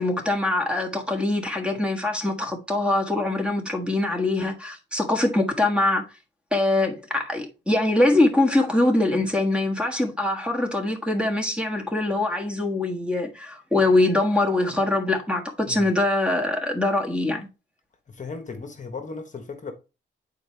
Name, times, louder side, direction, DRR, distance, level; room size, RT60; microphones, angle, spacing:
voice 1, 0.0-6.0 6.5-17.5, left 2 dB, 5° right, 1.5 m, -23 dB
voice 2, 18.1-19.7, left 4 dB, 35° left, 1.1 m, -36 dB
9.0 x 4.4 x 3.3 m
wide cardioid pair, 130°, 21 cm